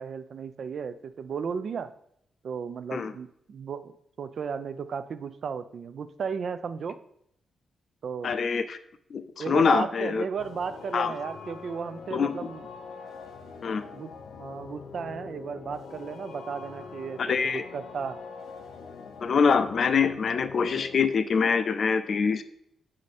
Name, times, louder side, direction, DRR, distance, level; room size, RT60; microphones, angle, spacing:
voice 1, 0.0-1.9 2.4-7.0 8.0-8.3 9.4-12.7 13.9-14.1 14.4-18.2, right 6 dB, 50° right, 12 dB, 0.4 m, -35 dB
voice 2, 8.2-8.8 9.1-10.2 10.9-11.1 12.1-12.3 13.6-13.8 17.2-17.6 19.2-22.4, left 5 dB, 45° left, 10 dB, 0.5 m, -24 dB
sound 1, 10.4-21.1, left 5 dB, 80° left, 0.7 m, -43 dB
7.1 x 5.0 x 4.2 m, 0.72 s
wide cardioid pair, 160°, 0 cm